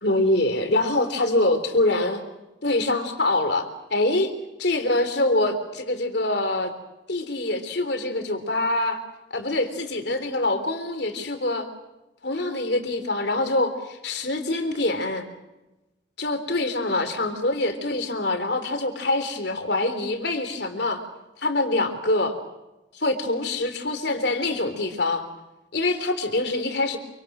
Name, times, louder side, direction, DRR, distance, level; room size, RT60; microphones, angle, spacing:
voice 1, 0.0-2.2 2.6-4.3 4.6-6.7 7.1-9.0 9.3-11.7 12.2-15.3 16.2-21.0 21.4-22.3 22.9-25.3 25.7-27.0, left 2 dB, 55° left, 8 dB, 3.5 m, -24 dB
27.5 x 25.5 x 6.3 m, 1.0 s
head